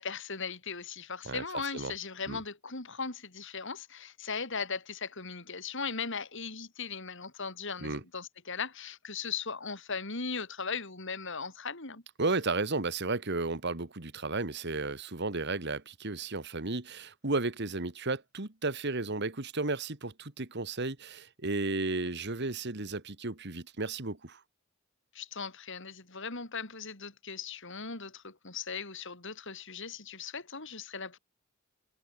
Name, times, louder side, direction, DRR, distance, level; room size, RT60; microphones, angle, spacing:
voice 1, 0.0-12.0 25.1-31.2, left 5 dB, 60° left, 4.5 m, -38 dB
voice 2, 12.2-24.4, right 3 dB, 55° right, 1.9 m, -33 dB
head